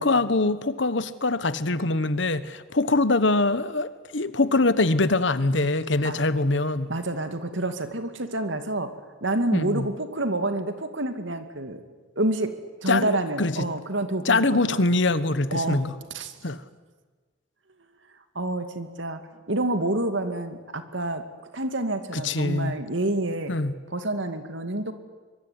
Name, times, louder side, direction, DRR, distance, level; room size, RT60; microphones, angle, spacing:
voice 1, 0.0-6.9 9.5-9.9 12.9-13.7 14.2-15.9 16.4-16.6 22.1-22.8 23.5-23.7, left 2 dB, 65° left, 14 dB, 1.3 m, -23 dB
voice 2, 6.9-8.9 9.2-11.8 12.2-12.5 12.8-14.9 15.5-16.3 18.3-19.2 19.5-21.2 21.5-23.6 23.9-24.9, right 1 dB, 70° right, 8 dB, 2.6 m, -28 dB
25.0 x 23.0 x 9.9 m, 1.4 s
head